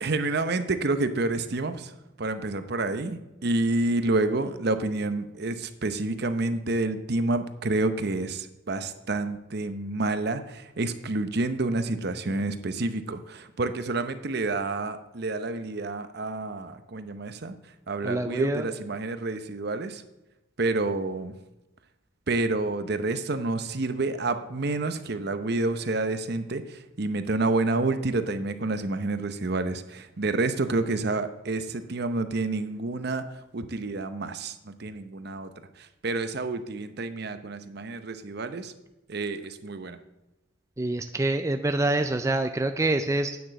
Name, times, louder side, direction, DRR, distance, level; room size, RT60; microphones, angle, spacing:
voice 1, 0.0-1.9 2.2-17.5 17.9-20.0 20.6-21.3 22.3-33.3 33.5-35.5 35.8-38.7 39.1-40.0, right 2 dB, 55° right, 10 dB, 0.7 m, -29 dB
voice 2, 18.0-18.7 40.8-43.4, right 2 dB, 15° right, 7 dB, 0.4 m, -26 dB
9.4 x 6.0 x 7.5 m, 0.97 s
head